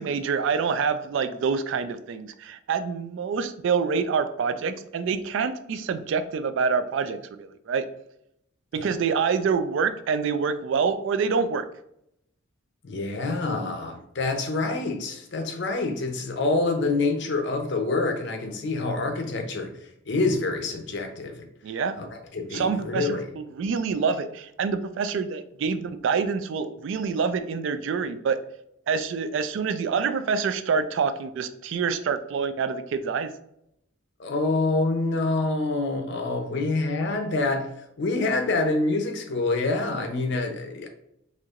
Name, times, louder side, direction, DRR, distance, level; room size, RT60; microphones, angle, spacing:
voice 1, 0.0-7.9 8.7-11.7 21.6-22.0 22.5-28.4 28.9-33.3, right 5 dB, 65° right, 0.3 m, -26 dB
voice 2, 12.8-19.7 20.1-21.5 22.0-23.3 34.2-40.9, left 3 dB, 60° left, 0.6 m, -26 dB
4.3 x 2.8 x 2.4 m
head